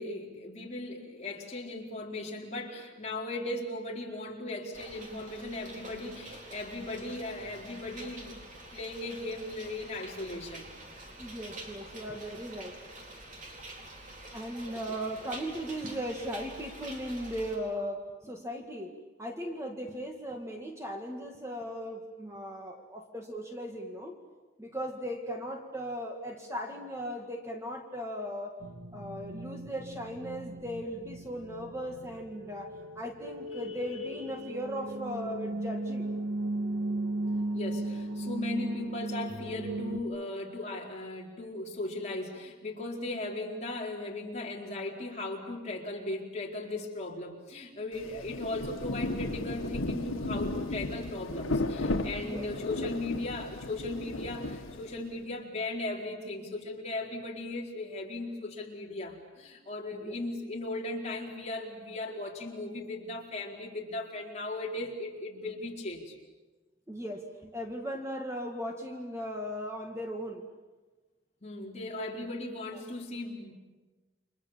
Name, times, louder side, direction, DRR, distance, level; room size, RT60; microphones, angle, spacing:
voice 1, 0.0-8.3 8.7-10.7 33.7-33.8 37.5-66.1 71.4-73.5, left 2 dB, 35° left, -1 dB, 4.3 m, -37 dB
sound 1, 4.7-17.6, right 1 dB, 40° right, 4.4 m, -47 dB
voice 2, 11.2-12.8 14.3-24.1 24.6-28.6 28.9-36.1 52.2-52.5 59.9-60.2 66.9-70.4 72.7-72.8, equal, 15° right, 2 dB, 2.0 m, -38 dB
sound 2, 28.6-40.0, right 2 dB, 85° right, 1.8 m, -36 dB
Rain, 47.9-55.2, left 2 dB, 85° left, 1.5 m, -34 dB
29.5 x 25.5 x 7.4 m, 1.3 s
head